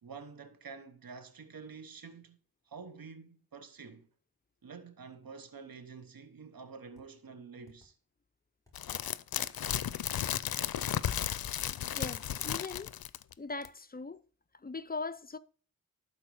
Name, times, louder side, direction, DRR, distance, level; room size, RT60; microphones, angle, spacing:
voice 1, 0.0-2.4 2.7-4.1 4.6-7.9, right 5 dB, 75° right, 1.0 m, -48 dB
sound 1, 7.0-7.1 7.7-7.9 8.7-8.8 9.4-9.8 10.7-12.0, left 3 dB, 10° left, 4.1 m, -63 dB
sound 2, 8.7-13.3 13.6-13.7, left 10 dB, 85° left, 0.5 m, -34 dB
voice 2, 11.9-12.9 13.4-14.2 14.5-15.4, left 3 dB, 25° left, 0.6 m, -40 dB
12.0 x 4.6 x 4.8 m
wide cardioid pair, 70°, 35 cm